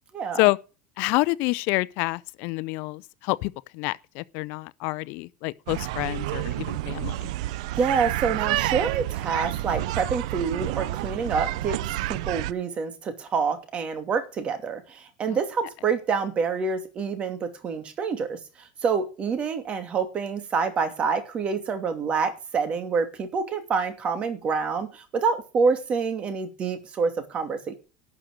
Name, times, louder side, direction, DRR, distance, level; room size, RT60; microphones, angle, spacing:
voice 1, 1.0-7.3 15.3-15.4, left 23 dB, 65° left, 0.5 m, -27 dB
sound 1, 5.7-12.5, right 16 dB, 80° right, 0.5 m, -29 dB
voice 2, 7.8-11.8 12.1-27.7, right 5 dB, 35° right, 2.6 m, -27 dB
12.0 x 6.4 x 6.7 m
supercardioid pair, 130°, 4 cm